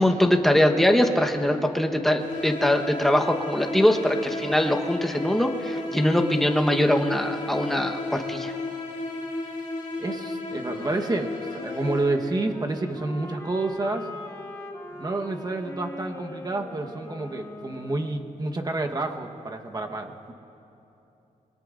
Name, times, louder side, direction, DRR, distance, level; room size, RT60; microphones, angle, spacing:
voice 1, 0.0-8.5, left 1 dB, ahead, 4 dB, 1.1 m, -22 dB
sound 1, 2.2-12.4, left 2 dB, 60° left, 4.3 m, -34 dB
voice 2, 10.0-14.1 15.0-20.3, right 2 dB, 25° right, 4 dB, 1.2 m, -29 dB
sound 2, 10.6-18.4, left 1 dB, 20° left, 1.6 m, -40 dB
26.0 x 21.5 x 2.5 m, 2.9 s
wide cardioid pair, 105°, 15 cm